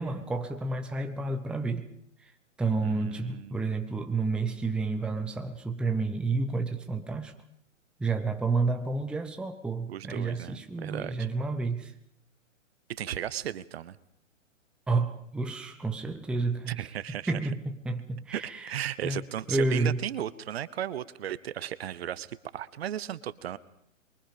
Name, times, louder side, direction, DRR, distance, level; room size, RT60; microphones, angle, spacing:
voice 1, 0.0-1.9 2.2-2.3 2.6-7.3 8.0-11.9 14.9-16.9 17.3-20.0, right 3 dB, ahead, 0.8 m, -30 dB
voice 2, 2.8-3.6 9.9-11.3 12.9-14.0 16.7-17.3 18.3-22.3 22.5-23.6, right 11 dB, 50° right, 1.1 m, -35 dB
27.0 x 23.5 x 5.2 m
hypercardioid pair, 135°, 38 cm